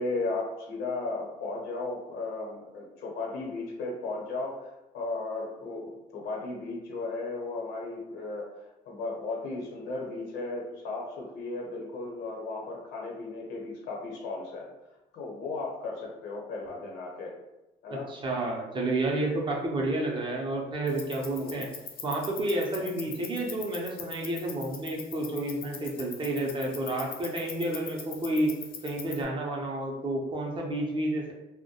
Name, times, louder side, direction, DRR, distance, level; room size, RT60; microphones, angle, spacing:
voice 1, 0.0-4.7 4.9-14.7 15.1-17.3 17.8-18.1 21.4-21.7, left 3 dB, 80° left, -2 dB, 0.8 m, -35 dB
voice 2, 17.9-21.7 22.0-28.5 28.8-31.3, right 1 dB, 30° right, -1 dB, 0.5 m, -30 dB
sound 1, 20.9-29.2, left 7 dB, 60° left, 0.4 m, -43 dB
2.2 x 2.1 x 2.8 m, 1.0 s
cardioid pair, 110°, 17 cm